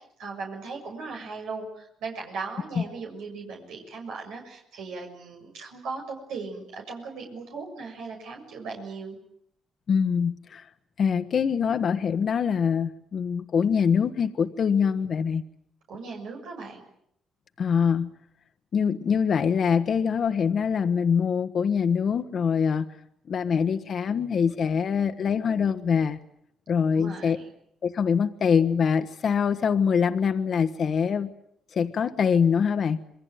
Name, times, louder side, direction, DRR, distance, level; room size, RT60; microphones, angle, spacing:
voice 1, 0.2-9.2 15.9-16.8 26.9-27.5, right 4 dB, 85° right, 1 dB, 6.6 m, -38 dB
voice 2, 9.9-10.7 11.0-15.4 17.6-18.1 18.7-22.9 23.3-26.2 26.7-27.4 27.8-31.3 31.7-33.0, left 6 dB, 55° left, 9 dB, 1.3 m, -24 dB
27.0 x 22.0 x 9.3 m, 0.71 s
cardioid pair, 90°, 0 cm